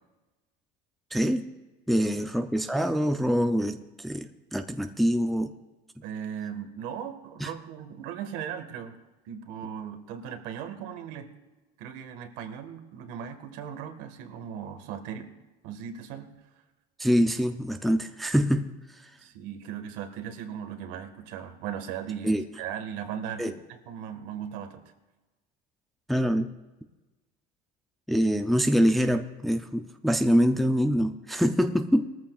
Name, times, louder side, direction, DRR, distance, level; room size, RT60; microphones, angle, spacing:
voice 1, 1.1-1.4 1.9-5.5 7.4-7.5 17.0-18.7 19.0-19.1 22.2-22.4 23.4-23.5 26.1-26.5 28.1-32.1, equal, ahead, 6 dB, 0.5 m, -25 dB
voice 2, 6.0-9.0 9.2-11.3 11.8-15.3 15.6-16.3 19.2-23.5 23.9-24.8, right 8 dB, 70° right, 6 dB, 1.7 m, -38 dB
20.0 x 14.0 x 2.4 m, 1.1 s
cardioid pair, 145°, 19 cm